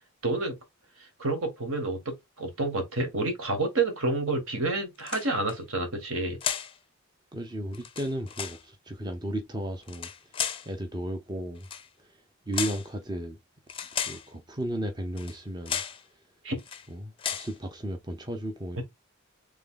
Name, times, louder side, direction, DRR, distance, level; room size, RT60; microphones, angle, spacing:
voice 1, 0.2-0.6 1.0-6.4 16.4-16.6 18.8-18.9, right 2 dB, 65° right, 1.7 m, -29 dB
sound 1, 5.0-5.6 6.4-6.8 7.7-8.6 9.8-10.7 11.6-11.9 12.5-12.9 13.7-14.3 15.2-15.4 15.6-16.0 16.6-16.9 17.2-17.5, left 8 dB, 25° left, 0.5 m, -34 dB
voice 2, 7.3-11.7 12.0-13.4 14.0-15.8 16.9-18.8, right 1 dB, 20° right, 0.6 m, -35 dB
3.6 x 3.5 x 3.8 m
head